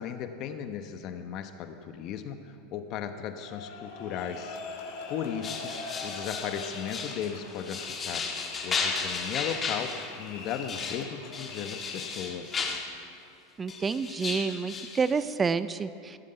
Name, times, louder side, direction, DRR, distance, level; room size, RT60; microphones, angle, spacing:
voice 1, 0.0-4.6 5.1-5.7 6.0-8.3 8.6-12.7, left 8 dB, 50° left, 8 dB, 1.0 m, -36 dB
sound 1, 3.4-12.3, left 4 dB, 70° left, 2.1 m, -42 dB
sound 2, 5.4-12.9 13.7-15.1, left 5 dB, 25° left, 1.3 m, -35 dB
voice 2, 13.6-16.2, right 5 dB, 20° right, 14 dB, 0.4 m, -29 dB
15.0 x 7.3 x 5.7 m, 2.4 s
supercardioid pair, 115°, 0 cm